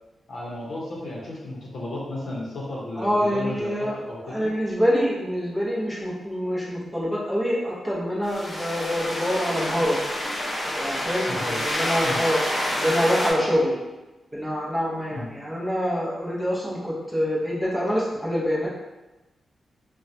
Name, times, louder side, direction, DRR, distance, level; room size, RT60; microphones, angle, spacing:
voice 1, 0.3-4.5 11.3-11.6 12.0-12.2 15.1-15.3, left 1 dB, 65° left, -5 dB, 0.7 m, -34 dB
voice 2, 3.0-3.9 4.2-10.0 10.6-12.4 12.7-13.8 14.3-18.7, equal, 5° right, -7 dB, 0.7 m, -25 dB
sound 1, 8.2-13.3, left 1 dB, 30° left, 0.7 m, -28 dB
2.9 x 2.2 x 2.6 m, 1.1 s
wide cardioid pair, 110°, 0 cm